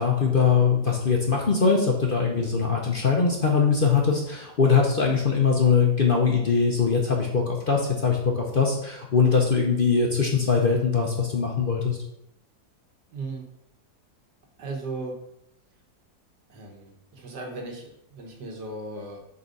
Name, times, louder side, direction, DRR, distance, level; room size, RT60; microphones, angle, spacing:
voice 1, 0.0-12.0, left 5 dB, 45° left, -1 dB, 0.7 m, -22 dB
voice 2, 13.1-13.4 14.6-15.2 16.5-19.2, right 3 dB, 85° right, 1 dB, 1.9 m, -36 dB
5.4 x 4.0 x 5.2 m, 0.78 s
omnidirectional pair, 1.7 m